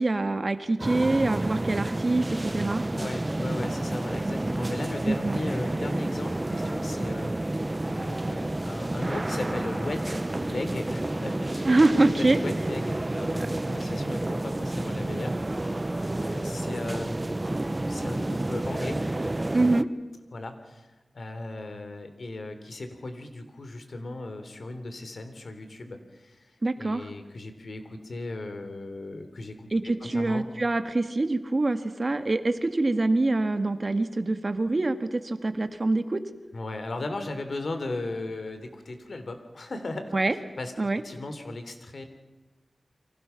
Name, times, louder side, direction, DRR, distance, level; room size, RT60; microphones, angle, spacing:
voice 1, 0.0-2.8 5.1-5.4 11.6-12.4 13.4-13.5 19.5-19.9 26.6-27.0 29.7-36.2 40.1-40.3 40.8-41.0, right 2 dB, 45° right, 9 dB, 1.7 m, -25 dB
sound 1, 0.8-19.8, right 1 dB, 25° right, 0.8 m, -30 dB
voice 2, 2.9-7.6 7.8-11.7 12.2-15.4 15.7-15.8 16.1-19.0 20.3-20.9 21.1-30.4 36.5-40.1 40.6-42.1, left 2 dB, 70° left, 8 dB, 3.4 m, -37 dB
29.5 x 24.5 x 5.9 m, 1.2 s
wide cardioid pair, 85°, 0 cm